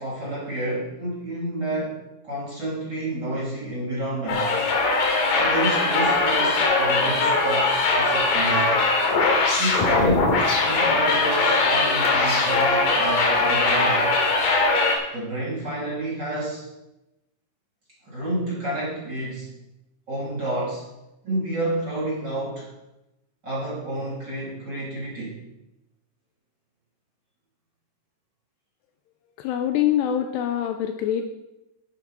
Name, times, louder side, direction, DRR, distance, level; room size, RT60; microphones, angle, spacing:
voice 1, 0.0-4.5 5.4-8.8 9.6-14.1 15.1-16.7 18.0-19.5 20.1-20.9 21.2-22.7 23.4-25.4, right 1 dB, 30° right, -6 dB, 2.7 m, -29 dB
sound 1, 4.3-15.0, left 3 dB, 55° left, 3.4 m, -21 dB
voice 2, 29.4-31.3, left 10 dB, 85° left, 6 dB, 2.5 m, -24 dB
11.5 x 10.0 x 4.1 m, 0.92 s
omnidirectional pair, 5.2 m